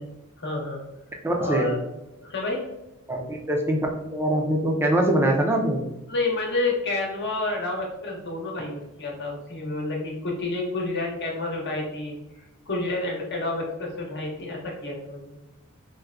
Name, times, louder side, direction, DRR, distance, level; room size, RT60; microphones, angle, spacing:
voice 1, 0.4-0.8 1.4-1.8 2.2-2.6 6.1-12.1 12.7-15.3, left 2 dB, 50° left, -1 dB, 0.9 m, -29 dB
voice 2, 1.2-1.7 3.1-3.8 4.1-5.8, right 1 dB, 10° right, 1 dB, 0.4 m, -23 dB
4.4 x 2.2 x 2.4 m, 0.92 s
head